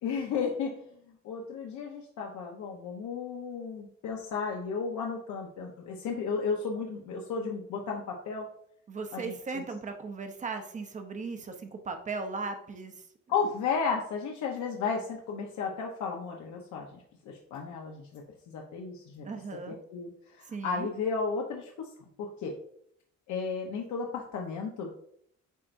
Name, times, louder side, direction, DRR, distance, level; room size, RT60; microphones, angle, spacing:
voice 1, 0.0-0.8 1.2-8.5 9.1-9.6 13.3-18.2 18.5-19.2 19.7-20.1 20.4-21.9 22.2-22.5 23.3-24.9, left 5 dB, 80° left, 0 dB, 0.9 m, -33 dB
voice 2, 8.9-12.9 19.2-19.8 20.5-20.9, right 4 dB, 25° right, 6 dB, 0.6 m, -37 dB
8.3 x 4.5 x 2.6 m, 0.68 s
cardioid pair, 180°, 29 cm